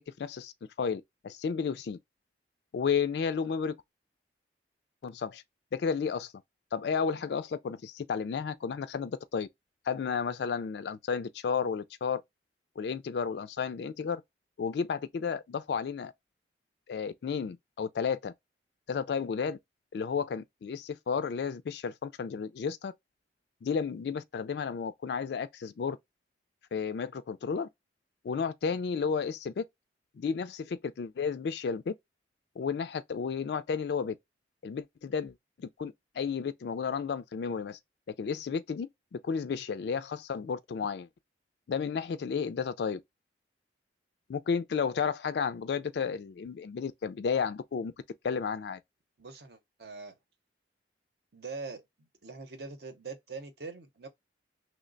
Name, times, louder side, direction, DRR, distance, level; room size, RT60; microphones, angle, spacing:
voice 1, 0.1-2.0 2.7-3.8 5.0-5.4 5.7-6.3 6.7-9.5 9.8-12.2 12.8-14.2 14.6-16.1 16.9-18.3 18.9-19.6 19.9-22.9 23.6-26.0 26.7-27.7 28.2-29.6 30.1-31.9 32.6-34.2 34.6-37.8 38.2-41.1 41.7-43.0 44.3-47.9 48.2-48.8, left 6 dB, 65° left, 0.3 m, -32 dB
voice 2, 49.2-50.2 51.3-54.1, right 4 dB, 60° right, 0.7 m, -43 dB
3.1 x 2.1 x 3.8 m
head